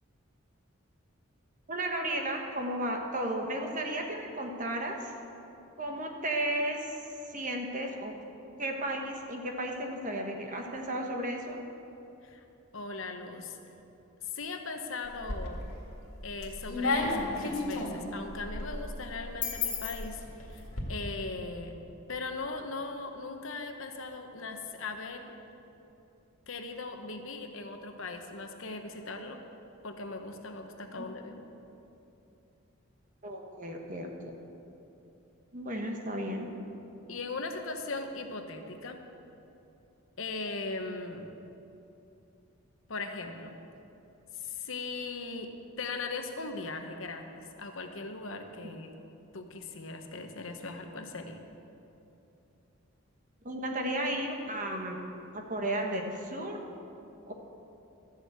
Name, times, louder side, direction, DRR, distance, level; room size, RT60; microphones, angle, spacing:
voice 1, 1.7-5.1 5.8-6.9 7.3-8.1 8.6-11.6 31.0-31.1 33.2-34.3 35.5-36.5 53.4-55.0 55.3-56.6 57.3-57.4, right 1 dB, 35° right, 2 dB, 1.3 m, -34 dB
voice 2, 12.7-13.6 14.2-15.8 16.2-20.6 20.9-21.8 22.1-25.3 26.5-29.4 29.8-31.4 37.1-39.0 40.2-41.3 42.9-43.6 44.3-45.5 45.8-49.0 49.3-51.4, left 3 dB, 65° left, 5 dB, 1.0 m, -39 dB
sound 1, 15.0-15.8 16.2-20.8, left 3 dB, 90° left, 2.0 m, -33 dB
13.0 x 7.0 x 8.1 m, 2.8 s
head